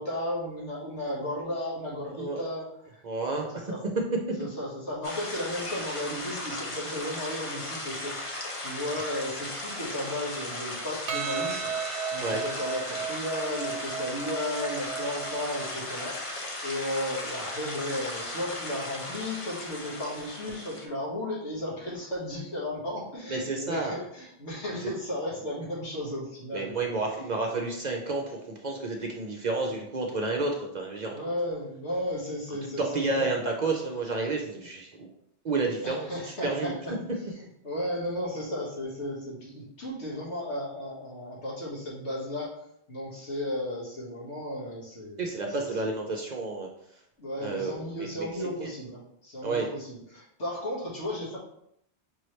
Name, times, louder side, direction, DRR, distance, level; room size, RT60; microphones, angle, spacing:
voice 1, 0.0-3.8 4.4-11.7 12.1-27.0 27.5-27.7 31.1-33.3 35.8-42.6 42.9-45.7 47.2-51.4, left 1 dB, 85° left, -5 dB, 1.8 m, -35 dB
voice 2, 3.0-3.6 12.2-12.4 23.3-23.9 26.5-31.2 32.6-35.1 35.4-36.7 45.2-46.7 47.4-47.8 48.6-48.7 49.4-49.7, right 3 dB, 50° right, 1 dB, 0.6 m, -30 dB
sound 1, 5.0-20.9, left 1 dB, 35° left, 0.7 m, -37 dB
Percussion, 11.1-15.7, right 7 dB, 75° right, 0.8 m, -35 dB
5.4 x 3.0 x 3.1 m, 0.76 s
omnidirectional pair, 1.2 m